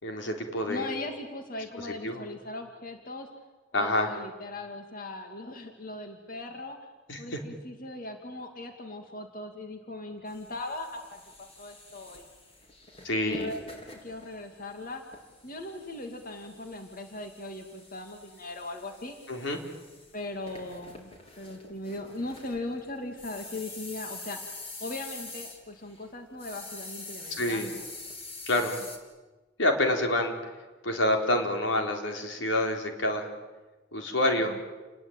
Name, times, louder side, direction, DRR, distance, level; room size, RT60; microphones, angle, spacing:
voice 1, 0.0-0.9 2.0-2.2 3.7-4.1 7.1-7.4 13.0-13.5 19.3-19.6 27.3-27.7 28.5-28.8 29.6-30.4 30.8-33.3 33.9-34.5, left 1 dB, 85° left, 3 dB, 4.3 m, -27 dB
voice 2, 0.7-3.3 3.7-6.8 7.2-12.3 13.2-13.6 14.0-15.0 15.4-19.1 20.1-21.1 21.4-24.5 24.8-27.8 34.3-34.6, left 2 dB, 50° left, 5 dB, 2.5 m, -39 dB
sound 1, 10.3-26.1 26.4-29.0, left 3 dB, 30° left, 3.9 m, -46 dB
29.5 x 21.0 x 9.0 m, 1.2 s
head